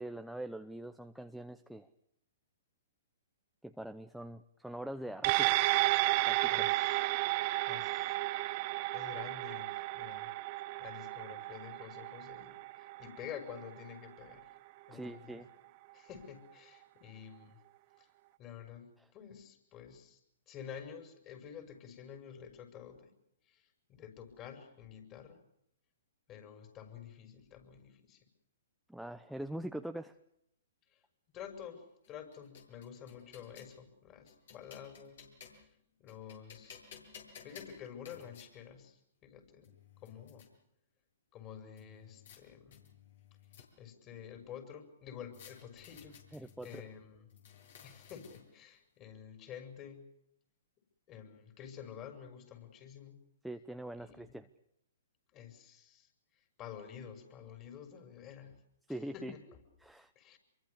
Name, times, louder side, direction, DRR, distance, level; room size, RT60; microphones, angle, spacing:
voice 1, 0.0-1.9 3.6-5.5 6.2-6.5 14.9-15.5 28.9-30.1 46.3-46.8 53.4-54.5 58.9-59.3 59.8-60.1, right 1 dB, ahead, 6 dB, 0.9 m, -43 dB
sound 1, 5.2-13.9 14.3-14.4, right 20 dB, 40° right, 0.9 m, -32 dB
voice 2, 6.5-7.1 7.6-10.4 10.8-14.5 14.9-15.4 15.9-17.6 18.0-18.1 18.4-20.2 20.5-23.1 23.5-25.4 26.3-28.3 30.9-31.0 31.3-35.3 35.5-36.8 37.4-39.7 40.0-40.5 41.3-42.9 43.8-47.3 47.8-50.0 51.1-53.2 54.0-54.4 55.3-58.6 58.9-59.6 60.1-60.4, left 8 dB, 30° left, 7 dB, 6.2 m, -50 dB
sound 2, 32.0-33.8 34.3-35.7 36.1-38.5 39.3-39.4 39.6-40.5 41.8-42.4 42.7-44.0 45.3-46.8 47.3-48.6, left 7 dB, 60° left, 7.8 m, -56 dB
26.5 x 23.5 x 6.8 m, 0.76 s
hypercardioid pair, 125°, 0 cm